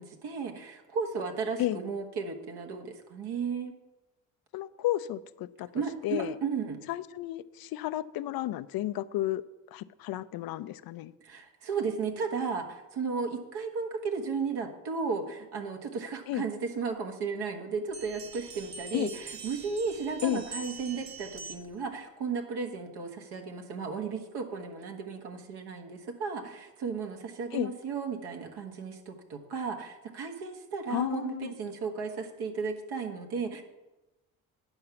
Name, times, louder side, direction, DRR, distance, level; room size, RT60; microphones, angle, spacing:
voice 1, 0.0-3.7 5.7-6.8 11.2-33.6, right 5 dB, 65° right, 4 dB, 1.5 m, -34 dB
voice 2, 4.5-6.4 6.9-9.4 9.7-11.1 16.3-16.5 18.9-19.1 20.2-20.4 27.5-27.7 30.9-31.5, left 14 dB, 60° left, 13 dB, 0.5 m, -32 dB
sound 1, 17.9-21.8, right 4 dB, 40° right, 1.0 m, -44 dB
9.8 x 4.8 x 6.9 m, 1.0 s
hypercardioid pair, 60°, 42 cm